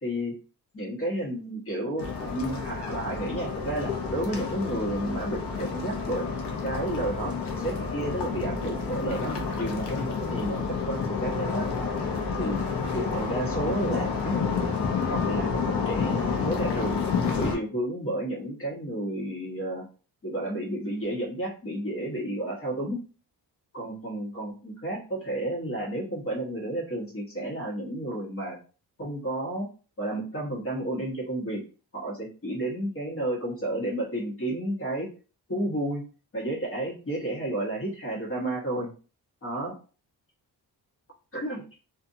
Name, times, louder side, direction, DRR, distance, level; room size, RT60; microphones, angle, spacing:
voice 1, 0.0-0.4 0.7-11.7 12.4-12.6 12.9-14.5 15.1-17.0 17.3-19.8 20.2-23.0 23.7-28.6 29.0-29.7 30.0-31.6 31.9-35.1 35.5-36.0 36.3-38.9 39.4-39.7 41.3-41.6, right 1 dB, 35° left, -3 dB, 1.2 m, -31 dB
sound 1, 2.0-17.6, left 5 dB, 75° left, 0.8 m, -30 dB
2.5 x 2.5 x 2.6 m, 0.35 s
wide cardioid pair, 125°, 40 cm